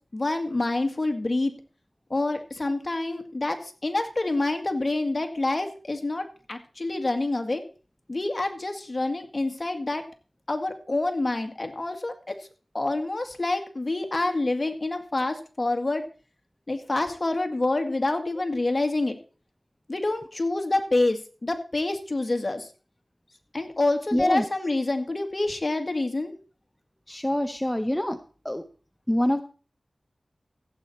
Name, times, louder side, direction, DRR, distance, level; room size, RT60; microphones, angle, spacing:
voice 1, 0.1-1.5 2.1-7.6 8.1-10.0 10.5-12.4 12.7-16.0 16.7-19.1 19.9-22.7 23.5-26.3, left 2 dB, 45° left, 6 dB, 2.0 m, -27 dB
voice 2, 24.1-24.4 27.1-28.2 28.4-28.6 29.1-29.4, left 1 dB, 10° left, 8 dB, 0.7 m, -25 dB
14.5 x 8.4 x 4.3 m, 0.37 s
wide cardioid pair, 50°, 0 cm